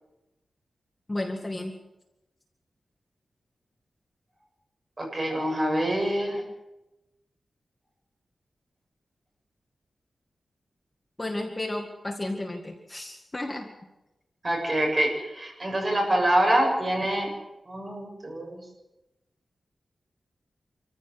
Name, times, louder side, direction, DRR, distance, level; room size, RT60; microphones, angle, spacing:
voice 1, 1.1-1.7 11.2-13.7, left 1 dB, 20° left, 1 dB, 2.0 m, -33 dB
voice 2, 5.0-6.4 14.4-17.3 17.7-18.6, right 1 dB, 25° right, 0 dB, 7.5 m, -25 dB
26.5 x 15.0 x 8.0 m, 0.96 s
wide cardioid pair, 175°, 0 cm